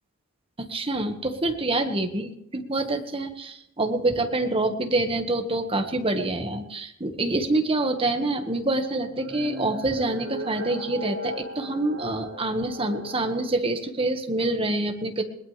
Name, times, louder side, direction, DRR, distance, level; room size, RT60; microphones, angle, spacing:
voice 1, 0.6-15.2, right 2 dB, 25° right, 5 dB, 1.7 m, -26 dB
sound 1, 9.0-13.4, equal, 70° right, 7.4 m, -37 dB
21.0 x 19.5 x 3.4 m, 0.78 s
head